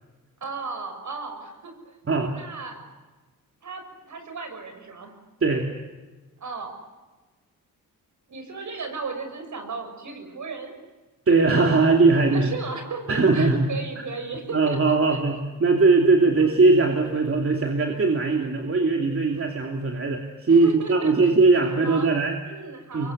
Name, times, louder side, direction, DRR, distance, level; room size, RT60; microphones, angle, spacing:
voice 1, 0.4-1.9 2.3-2.8 3.6-5.1 6.4-6.7 8.3-10.7 12.3-15.2 20.5-21.3 21.8-22.1 22.4-23.1, right 4 dB, 55° right, 6 dB, 6.6 m, -35 dB
voice 2, 11.3-12.5 13.1-13.7 14.5-22.4 22.9-23.1, right 3 dB, 40° right, 2 dB, 2.9 m, -20 dB
26.0 x 23.0 x 8.2 m, 1.2 s
wide cardioid pair, 125°, 34 cm